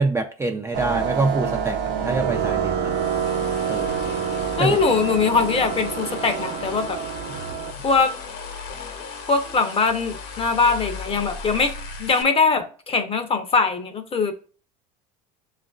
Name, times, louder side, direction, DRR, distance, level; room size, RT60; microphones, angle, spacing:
voice 1, 0.0-3.0 3.7-4.1 4.6-4.8, right 3 dB, 15° right, 4 dB, 0.4 m, -25 dB
sound 1, 0.7-7.7, right 7 dB, 65° right, 0.7 m, -27 dB
sound 2, 2.9-12.2, left 4 dB, 60° left, 1.1 m, -36 dB
voice 2, 4.6-7.0 7.8-8.1 9.3-11.7 12.0-14.3, left 4 dB, 30° left, 7 dB, 0.7 m, -21 dB
6.7 x 2.5 x 2.4 m, 0.40 s
supercardioid pair, 90°, 20 cm